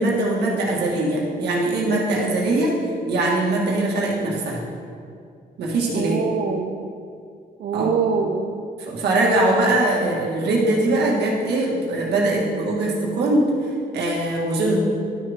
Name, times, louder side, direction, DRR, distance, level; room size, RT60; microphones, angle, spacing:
voice 1, 0.0-2.7 3.1-4.6 5.6-6.2 7.7-8.0 8.9-13.5 13.9-14.8, right 2 dB, 85° right, -3 dB, 1.8 m, -21 dB
voice 2, 5.9-6.9 7.6-8.6, right 5 dB, 65° right, 1 dB, 0.6 m, -24 dB
11.5 x 6.3 x 3.6 m, 2.4 s
cardioid pair, 120°, 17 cm